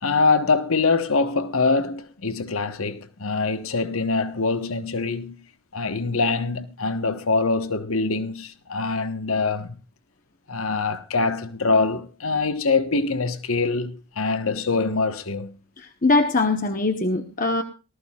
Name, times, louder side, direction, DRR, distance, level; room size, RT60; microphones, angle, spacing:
voice 1, 0.0-5.4 5.7-9.7 10.5-15.5, left 4 dB, 70° left, 1.3 m, -24 dB
voice 2, 15.8-17.6, left 2 dB, 40° left, 1.0 m, -22 dB
19.0 x 14.0 x 2.4 m
head